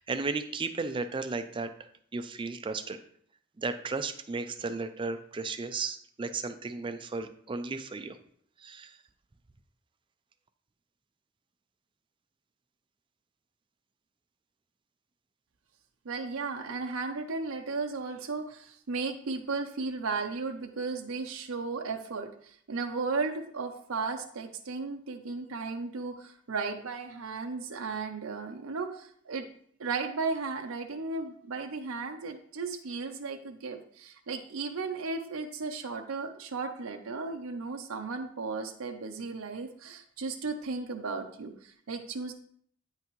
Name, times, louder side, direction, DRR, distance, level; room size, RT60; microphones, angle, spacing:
voice 1, 0.0-1.7 2.1-3.0 3.6-8.2 8.6-9.0, right 4 dB, 25° right, 9 dB, 0.4 m, -34 dB
voice 2, 16.0-29.5 29.8-42.3, right 4 dB, 80° right, 4 dB, 0.6 m, -35 dB
9.1 x 5.7 x 3.1 m, 0.63 s
head